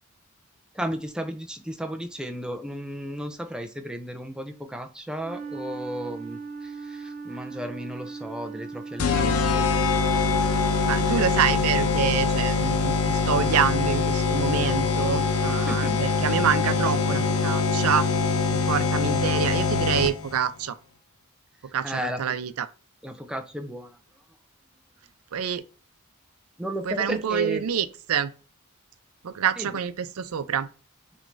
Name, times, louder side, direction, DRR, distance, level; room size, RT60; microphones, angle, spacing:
voice 1, 0.7-9.7 15.6-16.0 21.8-22.3 23.0-24.0 26.6-27.6 29.6-29.8, equal, 5° right, 0.5 m, -34 dB
Wind instrument woodwind instrument, 5.2-9.7, right 5 dB, 50° right, 0.9 m, -38 dB
sound 1, 9.0-20.4, left 4 dB, 75° left, 0.6 m, -23 dB
voice 2, 10.9-18.1 18.5-20.7 21.7-22.7 25.3-25.6 26.9-28.3 29.2-30.7, right 8 dB, 80° right, 0.4 m, -27 dB
6.1 x 3.3 x 2.6 m
head